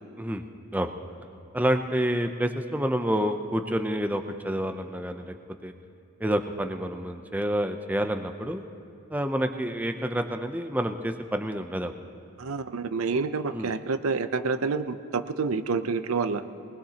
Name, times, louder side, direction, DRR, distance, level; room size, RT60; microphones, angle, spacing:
voice 1, 1.5-5.3 5.6-5.7 6.2-8.6 9.1-11.9 13.5-13.7, equal, 10° right, 6 dB, 0.5 m, -28 dB
voice 2, 12.4-16.4, right 4 dB, 90° right, 10 dB, 0.6 m, -28 dB
22.5 x 20.0 x 2.9 m, 2.6 s
head